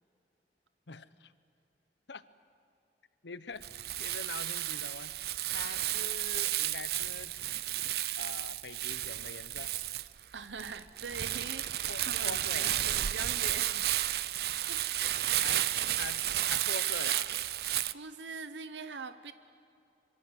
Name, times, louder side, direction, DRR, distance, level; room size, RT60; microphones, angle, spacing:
voice 1, 0.9-1.3 2.1-2.2 3.2-5.1 5.5-7.3 8.2-9.7 11.9-12.9 14.7-14.8 15.2-15.7 16.0-17.3, left 4 dB, 85° left, 14 dB, 1.0 m, -44 dB
Crumpling crinkling, 3.6-17.9, right 13 dB, 60° right, 0.5 m, -32 dB
voice 2, 10.3-13.9 15.0-15.2 17.9-19.3, right 4 dB, 90° right, 12 dB, 0.9 m, -43 dB
25.0 x 24.0 x 8.1 m, 2.6 s
head